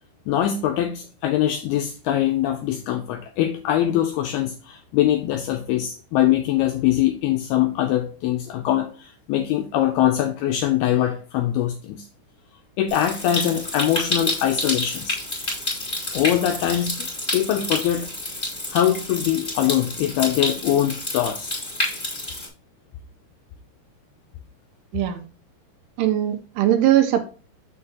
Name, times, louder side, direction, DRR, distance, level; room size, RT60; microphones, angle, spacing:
voice 1, 0.3-12.1 12.8-15.2 16.1-17.1 17.3-18.1 18.7-21.6, left 11 dB, 85° left, 2.2 m, -22 dB
Stream, 12.9-22.5, left 1 dB, 20° left, 1.2 m, -29 dB
voice 2, 26.0-27.2, right 12 dB, 80° right, 2.6 m, -20 dB
6.8 x 6.5 x 2.9 m
omnidirectional pair, 5.1 m